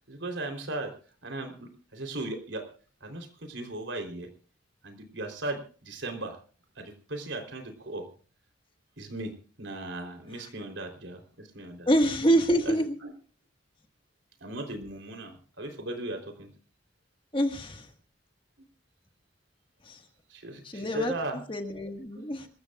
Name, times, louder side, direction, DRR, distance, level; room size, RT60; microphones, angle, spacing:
voice 1, 0.1-0.9 1.2-2.7 3.0-4.3 4.8-6.4 6.8-8.1 9.0-11.9 12.7-12.8 13.0-13.1 14.4-16.5 20.3-21.4 22.2-22.3, right 2 dB, 75° right, 4 dB, 3.7 m, -37 dB
voice 2, 11.9-13.0 17.3-17.9 19.8-20.0 20.6-22.5, equal, 25° left, 6 dB, 1.7 m, -26 dB
26.5 x 14.5 x 2.4 m, 0.40 s
head